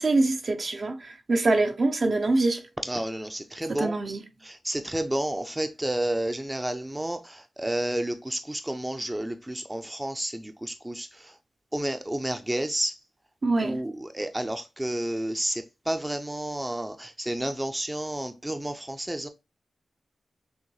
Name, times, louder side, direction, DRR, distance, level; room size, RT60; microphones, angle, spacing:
voice 1, 0.0-2.7 3.7-4.2 13.4-13.8, right 2 dB, 55° right, 0.7 m, -24 dB
voice 2, 2.9-3.9 4.5-11.1 11.7-12.9 13.6-19.3, right 1 dB, 15° right, 0.5 m, -31 dB
6.3 x 2.2 x 3.1 m
cardioid pair, 60°, 0 cm